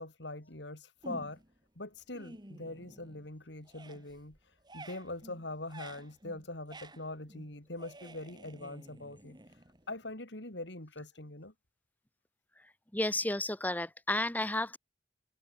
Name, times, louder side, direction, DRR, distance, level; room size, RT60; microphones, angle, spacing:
voice 1, 0.0-1.4 1.8-11.5, left 2 dB, 70° left, 3.8 m, -43 dB
sound 1, 1.0-1.6 2.0-3.3 3.6-10.1, right 1 dB, 25° right, 3.5 m, -52 dB
voice 2, 12.9-14.8, left 1 dB, 10° left, 1.1 m, -32 dB
head